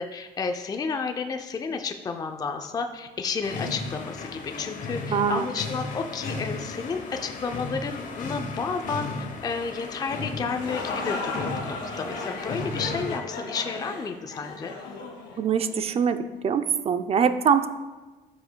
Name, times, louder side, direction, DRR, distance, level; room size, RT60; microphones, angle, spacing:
voice 1, 0.0-9.1 9.4-14.7, left 5 dB, 20° left, 6 dB, 0.4 m, -31 dB
sound 1, 3.4-13.2, left 3 dB, 50° left, 0.9 m, -35 dB
voice 2, 5.1-5.5 15.4-17.7, right 7 dB, 35° right, 9 dB, 0.5 m, -23 dB
sound 2, 10.3-16.0, left 3 dB, 85° left, 1.6 m, -35 dB
13.0 x 5.0 x 2.2 m, 1.2 s
cardioid pair, 110°, 17 cm